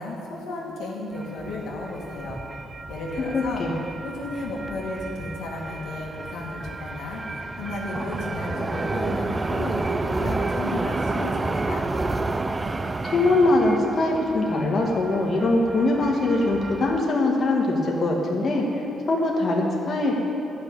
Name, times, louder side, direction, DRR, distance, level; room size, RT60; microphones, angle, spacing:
voice 1, 0.0-2.4 2.9-3.6 4.0-11.8, left 2 dB, 85° left, -3 dB, 2.1 m, -34 dB
sound 1, 1.1-17.0, right 3 dB, 25° right, 0.5 m, -31 dB
voice 2, 3.3-3.7 13.0-18.6 19.1-20.2, left 2 dB, 45° left, -2 dB, 1.8 m, -22 dB
12.0 x 6.2 x 8.8 m, 2.9 s
cardioid pair, 90°, 0 cm